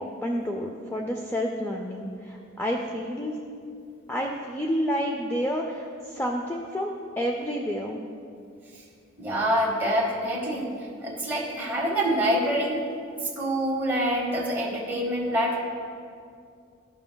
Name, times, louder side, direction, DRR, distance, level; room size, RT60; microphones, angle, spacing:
voice 1, 0.0-3.4 4.1-8.0, equal, 10° left, 1 dB, 0.4 m, -29 dB
voice 2, 9.2-10.7 11.0-12.9 13.1-15.6, equal, 10° right, -4 dB, 1.5 m, -26 dB
14.0 x 5.8 x 2.3 m, 2.4 s
head